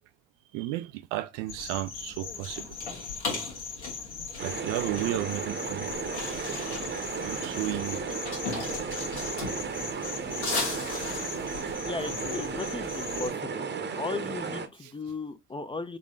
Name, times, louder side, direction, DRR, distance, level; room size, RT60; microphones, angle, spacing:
voice 1, 0.5-2.8 4.4-5.9 7.2-8.1 10.3-10.7 14.8-15.0, right 15 dB, 65° right, 0.4 m, -34 dB
sound 1, 1.5-13.3, left 4 dB, 90° left, 1.3 m, -37 dB
sound 2, 4.4-14.7, right 5 dB, 30° right, 0.8 m, -34 dB
voice 2, 11.8-13.6 14.0-16.0, left 3 dB, 15° left, 0.5 m, -36 dB
3.8 x 3.0 x 3.6 m
hypercardioid pair, 55°, 34 cm